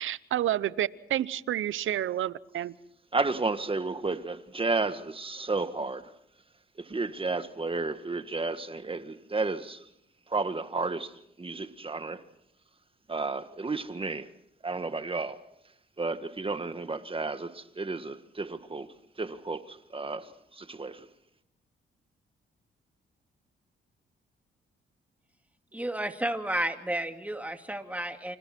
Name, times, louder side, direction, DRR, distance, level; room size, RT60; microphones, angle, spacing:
voice 1, 0.0-2.7, right 12 dB, 75° right, 0.8 m, -29 dB
voice 2, 3.1-6.1 6.8-9.9 10.3-12.2 13.1-14.3 14.6-15.4 16.0-21.1, right 3 dB, 25° right, 1.7 m, -32 dB
voice 3, 25.7-28.4, right 1 dB, 5° right, 2.6 m, -32 dB
29.0 x 27.0 x 4.5 m
cardioid pair, 70°, 21 cm